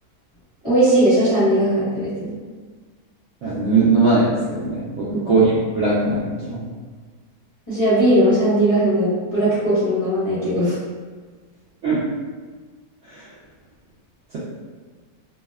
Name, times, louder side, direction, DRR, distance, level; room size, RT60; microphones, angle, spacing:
voice 1, 0.6-2.3 5.1-5.2 7.7-10.8, right 1 dB, 20° left, -14 dB, 0.9 m, -18 dB
voice 2, 3.4-6.6 11.8-12.0, right 3 dB, 65° right, -9 dB, 0.7 m, -19 dB
2.6 x 2.2 x 2.2 m, 1.4 s
omnidirectional pair, 1.6 m